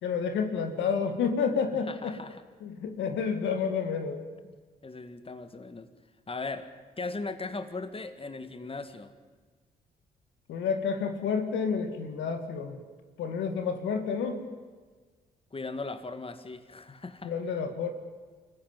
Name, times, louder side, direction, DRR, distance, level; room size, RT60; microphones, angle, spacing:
voice 1, 0.0-2.2 2.6-4.2 10.5-12.8 13.2-14.5 17.2-17.9, left 6 dB, 75° left, 7 dB, 2.0 m, -30 dB
voice 2, 1.9-2.4 4.8-5.9 6.3-6.7 7.0-9.1 15.5-17.3, left 3 dB, 30° left, 10 dB, 1.9 m, -38 dB
25.0 x 15.0 x 9.5 m, 1.4 s
hypercardioid pair, 45°, 20 cm